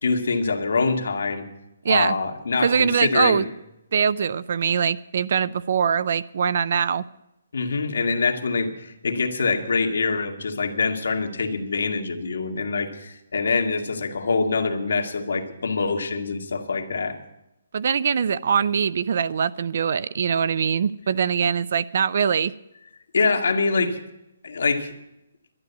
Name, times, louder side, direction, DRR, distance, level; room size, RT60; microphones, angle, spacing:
voice 1, 0.0-1.5 1.9-3.4 7.5-17.2 23.1-24.0 24.4-24.9, left 4 dB, 70° left, 1.9 m, -24 dB
voice 2, 1.8-2.2 2.6-3.5 3.9-7.0 17.7-22.5, right 7 dB, 40° right, 0.4 m, -22 dB
12.0 x 11.0 x 8.1 m
hypercardioid pair, 180°, 0 cm